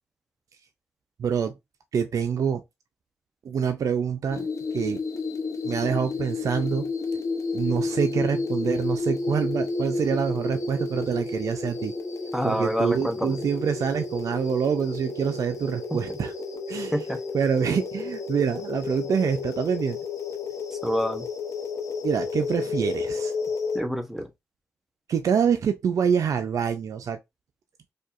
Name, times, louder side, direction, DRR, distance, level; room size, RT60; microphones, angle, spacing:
voice 1, 1.2-1.5 1.9-2.6 3.4-4.5 4.7-5.0 5.6-6.9 7.5-11.9 12.4-16.3 16.7-17.0 17.3-20.0 22.0-23.3 25.1-27.2, right 7 dB, 80° right, 0.4 m, -26 dB
sound 1, 4.3-23.8, left 3 dB, 70° left, 0.8 m, -31 dB
voice 2, 12.3-13.4 16.9-17.2 20.7-21.3 23.7-24.3, equal, 5° right, 0.9 m, -27 dB
4.3 x 2.7 x 2.4 m
cardioid pair, 65°, 6 cm